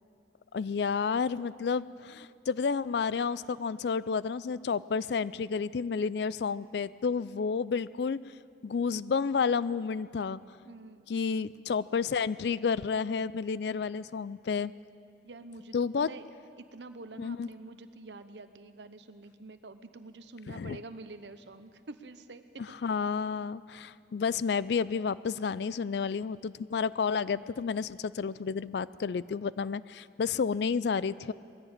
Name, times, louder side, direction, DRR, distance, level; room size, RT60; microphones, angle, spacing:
voice 1, 0.5-8.2 8.6-10.4 11.1-14.7 15.7-16.1 17.2-17.5 20.5-20.8 22.6-31.3, left 5 dB, 70° left, 18 dB, 0.4 m, -31 dB
voice 2, 10.7-11.2 15.2-16.3 16.7-22.6, right 2 dB, 75° right, 10 dB, 0.9 m, -47 dB
20.5 x 15.5 x 8.8 m, 2.6 s
head